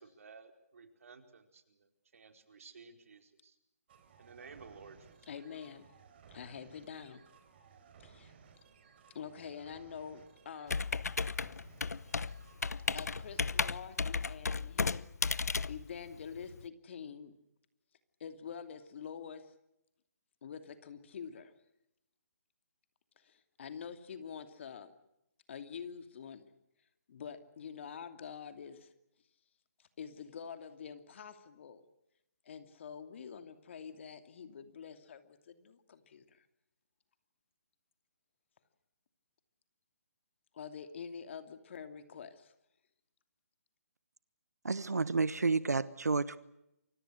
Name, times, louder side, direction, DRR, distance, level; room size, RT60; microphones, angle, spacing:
voice 1, 0.0-1.6 2.1-3.5 4.2-5.0, right 5 dB, 60° right, 6 dB, 4.7 m, -54 dB
sound 1, 3.9-13.7, right 6 dB, 40° right, 4.6 m, -60 dB
voice 2, 5.2-5.9 6.3-7.2 8.0-8.3 9.1-10.8 12.9-15.0 15.7-17.3 18.2-19.5 20.4-21.5 23.2-24.9 25.5-26.4 27.1-28.9 29.8-31.8 32.4-36.5 40.5-42.5, left 7 dB, 50° left, 9 dB, 2.7 m, -46 dB
Computer keyboard, 10.7-16.6, left 4 dB, 80° left, 0.9 m, -34 dB
voice 3, 44.6-46.4, right 4 dB, 80° right, 17 dB, 1.1 m, -30 dB
29.5 x 24.5 x 6.5 m, 0.84 s
figure-of-eight pair, 145°, 9 cm